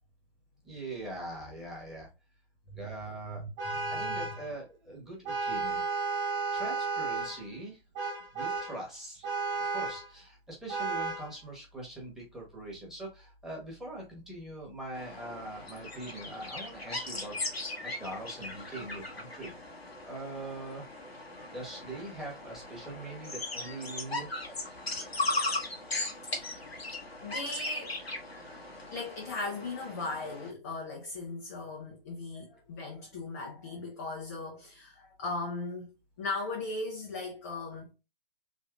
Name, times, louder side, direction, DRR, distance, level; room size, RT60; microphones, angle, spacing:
voice 1, 0.6-2.1 2.7-3.4 3.9-5.8 6.5-7.8 8.3-9.3 9.6-17.3 17.8-20.9 21.5-24.3, right 1 dB, ahead, 1.0 m, -42 dB
voice 2, 3.2-4.2 26.2-26.6 27.2-28.0 28.9-37.9, left 3 dB, 15° left, 0.4 m, -38 dB
Vehicle horn car horn honking, 3.6-4.5 5.3-7.4 8.0-8.8 9.2-10.1 10.7-11.3, right 4 dB, 30° right, 1.4 m, -33 dB
sound 1, 14.9-30.5, left 2 dB, 90° left, 1.2 m, -38 dB
3.5 x 2.8 x 2.3 m
figure-of-eight pair, 130°, 30 cm